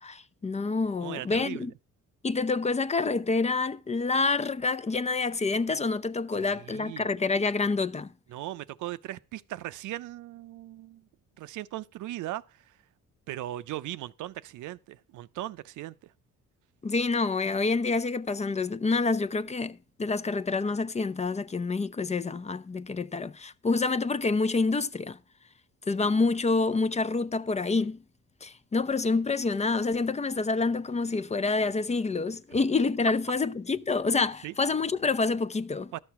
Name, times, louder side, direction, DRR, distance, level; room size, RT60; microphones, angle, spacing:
voice 1, 0.0-1.7 2.2-8.1 16.8-25.2 25.9-28.0 28.4-35.9, left 3 dB, 20° left, 0.6 m, -27 dB
voice 2, 1.0-1.7 6.3-7.1 8.3-11.1 11.4-12.7 13.3-16.1 34.4-34.5 35.9-36.0, right 15 dB, 80° right, 0.6 m, -38 dB
12.5 x 6.4 x 5.7 m
cardioid pair, 90°, 30 cm